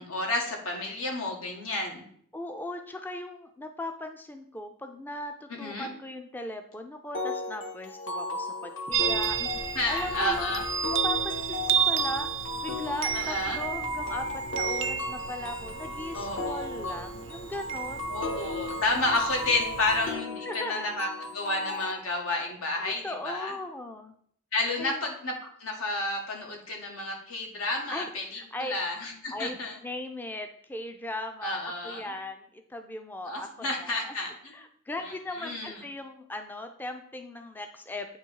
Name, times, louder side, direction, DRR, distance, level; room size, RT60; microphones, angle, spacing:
voice 1, 0.0-2.0 5.5-5.9 9.4-10.6 13.1-13.6 16.1-16.5 16.8-16.9 18.1-23.5 24.5-25.3 25.6-29.8 31.4-32.1 33.3-34.5 35.0-35.8, left 2 dB, 90° left, 1 dB, 1.5 m, -31 dB
voice 2, 2.3-9.4 9.9-10.5 10.9-12.3 12.6-18.1 20.4-21.1 22.8-24.2 24.8-25.0 27.9-28.7 29.3-29.6 29.8-34.2 34.5-38.2, left 1 dB, 10° left, 6 dB, 0.4 m, -38 dB
sound 1, 7.1-21.9, left 2 dB, 60° left, 0.9 m, -35 dB
Chime, 8.9-20.1, right 9 dB, 65° right, 0.4 m, -32 dB
8.3 x 3.1 x 4.6 m, 0.62 s
head